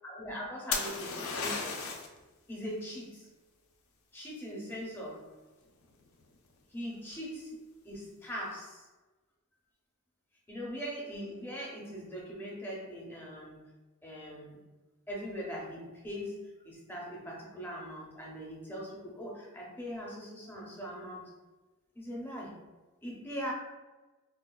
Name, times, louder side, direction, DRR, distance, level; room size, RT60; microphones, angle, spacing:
voice 1, 0.0-1.9 2.5-3.3 4.1-5.3 6.7-7.6 7.8-8.9 10.5-13.7 14.0-14.6 15.1-21.3 21.9-22.6 23.0-23.5, equal, 10° left, -3 dB, 0.6 m, -41 dB
sound 1, 0.7-2.2 5.8-6.3, left 4 dB, 70° left, 0.5 m, -34 dB
4.4 x 2.3 x 2.2 m, 1.2 s
head